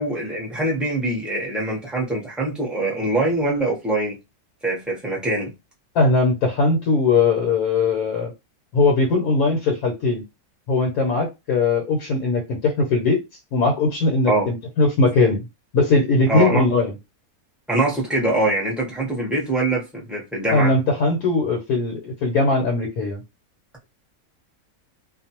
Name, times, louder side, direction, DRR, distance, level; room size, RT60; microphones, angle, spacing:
voice 1, 0.0-4.2 4.6-5.5 14.3-14.5 16.3-16.6 17.7-20.7, right 2 dB, ahead, 0.6 m, -23 dB
voice 2, 5.9-8.3 8.7-10.2 10.7-13.2 13.5-15.4 15.7-16.9 20.5-23.2, left 3 dB, 75° left, 1.2 m, -20 dB
2.5 x 2.3 x 2.8 m
omnidirectional pair, 1.6 m